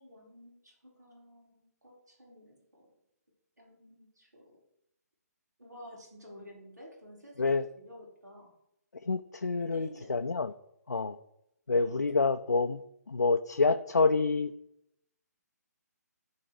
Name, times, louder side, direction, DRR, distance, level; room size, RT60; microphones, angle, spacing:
voice 1, 0.0-2.9 3.6-4.6 5.6-8.5 9.6-10.1 11.7-12.0, equal, 80° right, -2 dB, 4.1 m, -52 dB
voice 2, 9.1-10.5 10.9-11.2 11.7-12.8 13.1-14.5, left 4 dB, 75° left, 7 dB, 0.5 m, -27 dB
14.5 x 4.8 x 4.8 m, 0.80 s
figure-of-eight pair, 135°, 9 cm